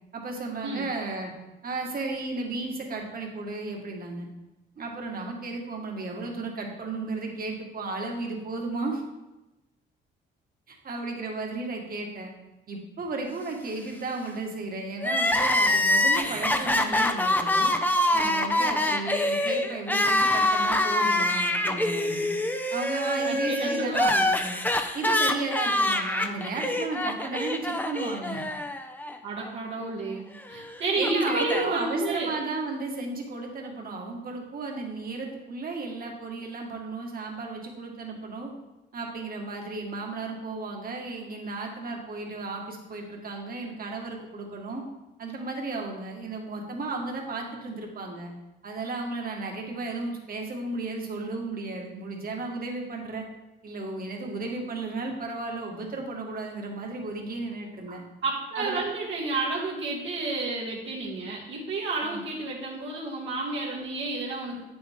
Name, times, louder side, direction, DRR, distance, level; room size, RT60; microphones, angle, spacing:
voice 1, 0.1-1.3 1.6-4.3 4.8-9.0 10.7-12.3 12.7-17.7 18.1-22.3 22.7-24.0 24.9-28.4 31.0-38.5 38.9-44.8 45.2-48.3 48.6-53.3 53.6-58.0 58.6-58.8 62.0-62.2, right 3 dB, 45° right, 1 dB, 1.8 m, -34 dB
Crying sobbing, 15.0-29.2 29.4-29.5 30.5-31.7, left 1 dB, 10° left, 0.7 m, -25 dB
voice 2, 23.2-24.4 29.2-32.3 58.2-64.6, right 3 dB, 70° right, -6 dB, 1.9 m, -31 dB
8.5 x 7.0 x 3.6 m, 1.0 s
cardioid pair, 90°, 20 cm